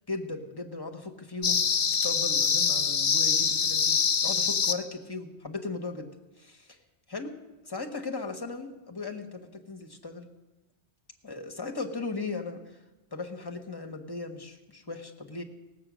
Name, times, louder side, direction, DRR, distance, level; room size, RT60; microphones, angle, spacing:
voice 1, 0.1-1.6 2.0-6.1 6.4-6.8 7.1-7.3 7.6-10.3 11.2-12.8 13.1-15.4, left 3 dB, 20° left, 3 dB, 1.1 m, -37 dB
sound 1, 1.4-4.7, left 6 dB, 60° left, 0.9 m, -25 dB
17.5 x 7.9 x 6.1 m, 1.1 s
omnidirectional pair, 1.1 m